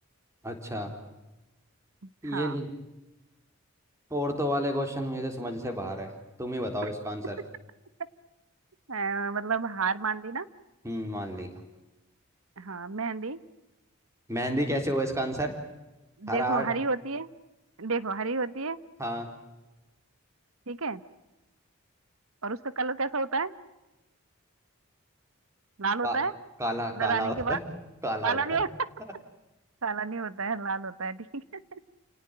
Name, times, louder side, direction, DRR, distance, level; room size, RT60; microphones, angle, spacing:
voice 1, 0.4-0.9 2.2-2.7 4.1-6.1 6.4-7.4 10.8-11.5 14.3-15.5 16.3-16.7 19.0-19.3 26.0-26.2 26.6-27.6 28.0-28.6, equal, 15° right, 5 dB, 3.9 m, -30 dB
voice 2, 2.2-2.6 8.9-10.5 12.6-13.4 16.2-17.3 17.8-18.8 20.7-21.0 22.4-23.5 25.8-26.3 27.0-27.6 28.2-28.7 29.8-31.4, right 4 dB, 75° right, 15 dB, 1.3 m, -30 dB
30.0 x 18.5 x 8.9 m, 1.1 s
head